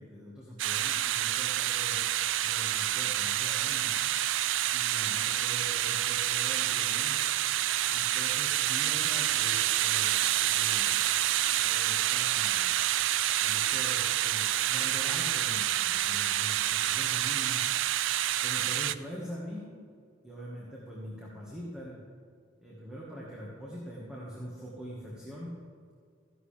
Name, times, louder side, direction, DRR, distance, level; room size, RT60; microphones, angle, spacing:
voice 1, 0.0-2.0 2.4-3.9 4.7-7.2 7.9-11.0 11.6-12.7 13.4-17.6 18.4-19.7 20.2-22.0 22.6-25.5, equal, 5° right, -6 dB, 1.6 m, -43 dB
sound 1, 0.6-18.9, right 13 dB, 85° right, 0.4 m, -28 dB
14.0 x 11.0 x 3.4 m, 2.2 s
head